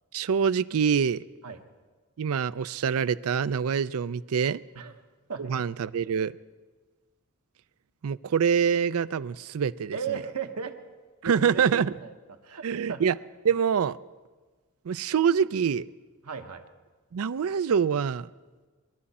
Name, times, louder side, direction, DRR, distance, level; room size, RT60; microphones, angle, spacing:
voice 1, 0.1-1.2 2.2-4.6 5.4-6.3 8.0-10.0 11.2-12.0 12.6-13.1 13.4-14.0 14.8-15.9 17.1-18.3, right 7 dB, 70° right, 15 dB, 0.4 m, -25 dB
voice 2, 9.9-10.7 11.2-12.1 12.4-13.0 16.2-16.6, right 6 dB, 85° right, 6 dB, 1.1 m, -36 dB
21.5 x 12.5 x 4.2 m, 1.3 s
head